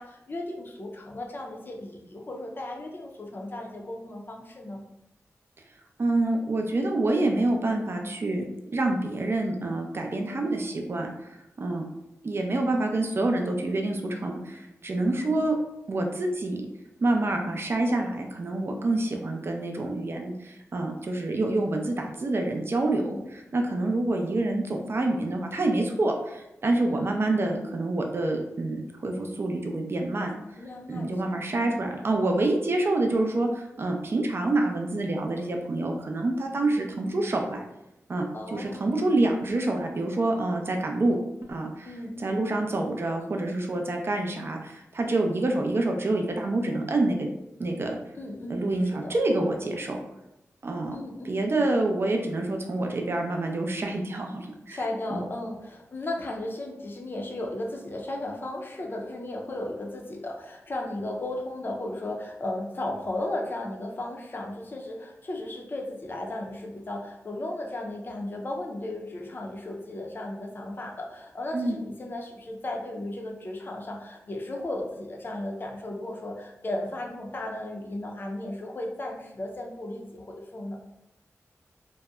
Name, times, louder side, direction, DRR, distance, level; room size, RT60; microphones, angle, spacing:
voice 1, 0.0-4.8 10.3-10.6 15.1-15.5 22.9-23.2 26.9-27.1 30.6-31.2 31.5-31.8 36.6-36.9 38.3-38.9 41.9-42.4 48.2-49.1 50.9-51.4 54.7-80.8, left 1 dB, 40° left, 0 dB, 0.5 m, -35 dB
voice 2, 6.0-8.5 8.7-11.1 11.6-11.8 12.2-15.5 15.9-16.6 17.0-23.0 23.5-30.3 30.9-37.6 38.1-41.2 41.5-47.3 47.6-48.0 48.5-50.0 50.6-51.0 51.2-54.8 55.1-55.3 71.5-71.8, right 2 dB, 50° right, 3 dB, 0.4 m, -27 dB
2.7 x 2.1 x 2.3 m, 0.87 s
cardioid pair, 60°, 5 cm